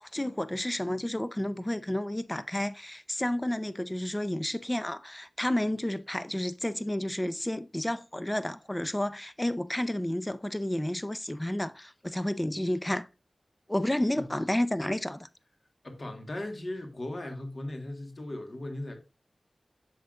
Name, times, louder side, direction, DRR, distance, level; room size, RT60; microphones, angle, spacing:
voice 1, 0.0-13.1 13.7-15.3, left 1 dB, 15° left, 0.5 m, -31 dB
voice 2, 15.8-19.0, left 1 dB, 50° left, 1.4 m, -37 dB
7.9 x 6.4 x 2.5 m
wide cardioid pair, 65°, 0 cm